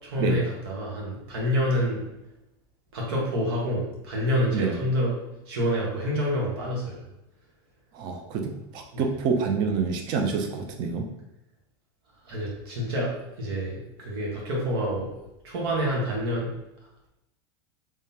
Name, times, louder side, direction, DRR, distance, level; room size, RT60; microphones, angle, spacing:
voice 1, 0.0-2.1 2.9-7.0 8.9-9.1 12.2-15.1 15.4-16.5, equal, 80° right, -2 dB, 1.4 m, -28 dB
voice 2, 7.9-11.1, right 5 dB, 35° right, 4 dB, 0.5 m, -27 dB
3.7 x 3.1 x 2.8 m, 0.89 s
supercardioid pair, 170°, 13 cm